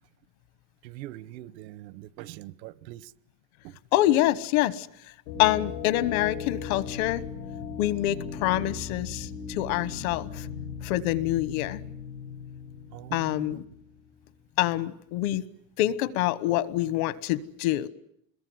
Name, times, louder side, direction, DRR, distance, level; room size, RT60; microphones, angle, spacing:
voice 1, 0.8-3.1 3.6-3.8 12.9-13.6, right 15 dB, 85° right, 20 dB, 1.1 m, -42 dB
voice 2, 3.9-4.9 5.4-7.2 7.8-10.5 10.8-11.8 13.1-13.6 14.6-15.4 15.8-17.9, left 15 dB, 55° left, 17 dB, 1.3 m, -26 dB
sound 1, 5.3-13.9, left 6 dB, 90° left, 6.4 m, -38 dB
26.5 x 21.5 x 9.5 m, 0.72 s
supercardioid pair, 165°, 50 cm